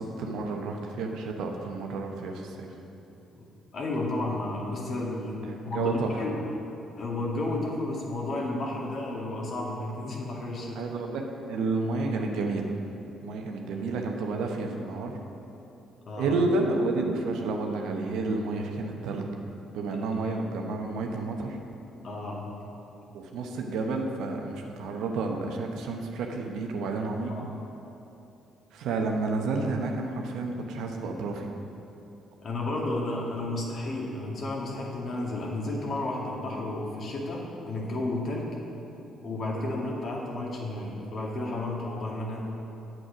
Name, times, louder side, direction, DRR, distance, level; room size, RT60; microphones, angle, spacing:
voice 1, 0.0-2.7 5.4-6.2 10.7-12.8 13.2-15.2 16.2-19.3 19.7-21.6 23.1-27.3 28.7-31.5, right 3 dB, 70° right, 2 dB, 0.9 m, -30 dB
voice 2, 3.7-5.4 5.6-6.3 7.0-10.8 16.1-16.3 22.0-22.6 27.3-27.5 32.4-38.6 39.2-42.4, left 2 dB, 55° left, -2 dB, 1.9 m, -32 dB
8.7 x 7.7 x 5.0 m, 2.9 s
hypercardioid pair, 50°, 0 cm